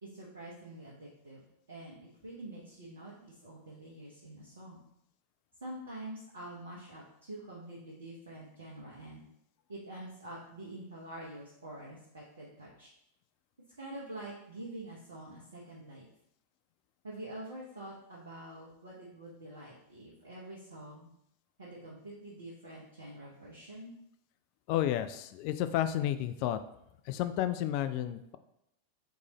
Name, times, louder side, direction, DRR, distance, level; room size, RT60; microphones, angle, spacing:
voice 1, 0.0-1.4 1.7-4.8 5.6-9.2 9.7-12.9 13.8-16.1 17.0-21.1 21.6-23.9, right 1 dB, 70° right, -5 dB, 0.9 m, -46 dB
voice 2, 24.7-26.6 27.1-28.4, left 12 dB, 45° left, 11 dB, 0.3 m, -31 dB
3.5 x 3.3 x 3.9 m, 0.77 s
figure-of-eight pair, 90°, 0 cm